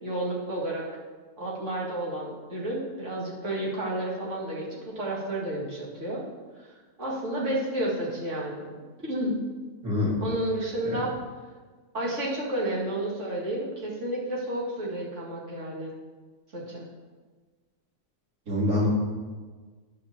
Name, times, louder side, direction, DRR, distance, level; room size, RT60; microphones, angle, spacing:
voice 1, 0.0-0.9 1.4-4.7 5.0-6.2 6.6-6.7 7.0-8.8 9.0-9.4 10.2-11.2 11.9-15.9 16.5-16.9, right 1 dB, 50° right, -5 dB, 2.5 m, -31 dB
voice 2, 9.8-10.2 10.8-11.0 18.5-18.9, left 1 dB, 80° right, -6 dB, 3.3 m, -25 dB
10.0 x 4.9 x 7.0 m, 1.4 s
omnidirectional pair, 1.6 m